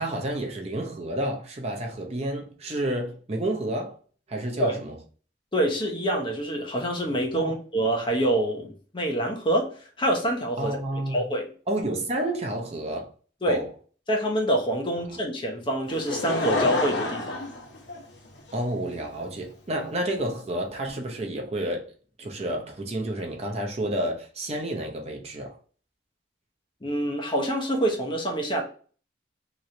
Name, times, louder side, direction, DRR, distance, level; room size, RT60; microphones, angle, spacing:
voice 1, 0.0-4.0 4.3-5.0 7.3-7.6 10.6-11.2 11.7-13.1 13.5-13.7 18.5-21.9 22.2-25.6, right 1 dB, 35° right, 0.6 m, -30 dB
voice 2, 5.5-10.8 11.1-11.5 13.4-13.6 14.1-17.4 26.8-28.6, right 1 dB, 25° left, 0.8 m, -26 dB
Laughter / Crowd, 15.9-18.5 19.2-19.3, left 2 dB, 75° left, 1.0 m, -28 dB
3.0 x 3.0 x 2.6 m
head